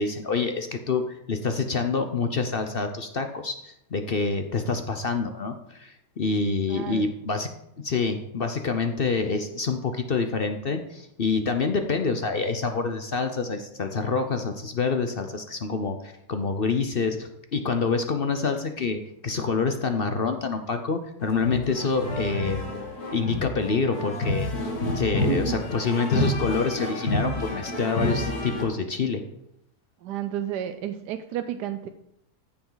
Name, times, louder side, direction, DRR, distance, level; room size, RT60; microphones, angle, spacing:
voice 1, 0.0-7.5 7.8-22.6 23.1-24.5 24.9-29.2, left 4 dB, 50° left, 6 dB, 0.7 m, -27 dB
voice 2, 6.7-7.1 25.3-25.6 30.0-31.9, right 10 dB, 85° right, 8 dB, 1.2 m, -31 dB
sound 1, 21.2-28.6, left 1 dB, 65° left, 2.4 m, -29 dB
14.0 x 7.1 x 4.0 m, 0.80 s
omnidirectional pair, 1.7 m